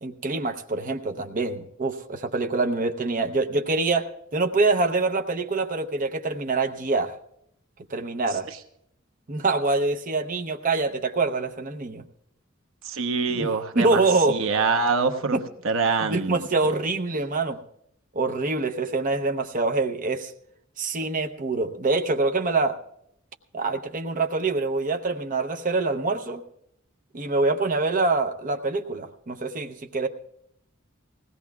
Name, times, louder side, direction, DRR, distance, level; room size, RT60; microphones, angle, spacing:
voice 1, 0.0-7.1 7.9-8.5 9.3-12.0 13.3-13.5 13.7-14.4 15.3-15.4 16.0-17.6 18.1-20.3 20.8-22.8 23.5-26.4 27.1-30.1, right 3 dB, 40° right, 6 dB, 0.8 m, -25 dB
voice 2, 12.8-14.0 14.3-15.4 15.6-16.4, right 4 dB, 70° right, 6 dB, 0.9 m, -24 dB
20.0 x 16.5 x 2.4 m, 0.75 s
head